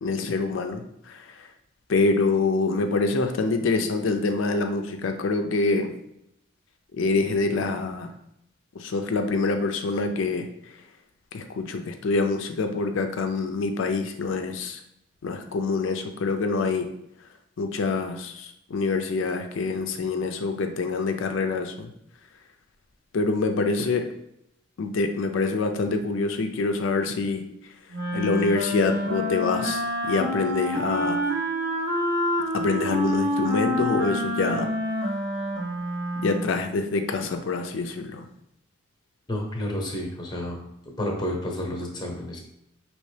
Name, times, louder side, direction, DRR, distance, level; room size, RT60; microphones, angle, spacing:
voice 1, 0.0-1.5 1.9-5.9 6.9-8.1 8.8-10.5 11.3-14.8 15.2-16.9 17.6-21.9 23.1-24.0 24.8-27.4 28.1-31.2 32.5-34.7 36.2-38.3, left 3 dB, 70° left, 5 dB, 0.4 m, -26 dB
Wind instrument woodwind instrument, 27.9-36.6, equal, 75° right, 1.0 m, -27 dB
voice 2, 39.3-40.6 41.0-42.4, left 1 dB, 20° left, 1 dB, 0.8 m, -30 dB
5.3 x 3.0 x 3.2 m, 0.79 s
head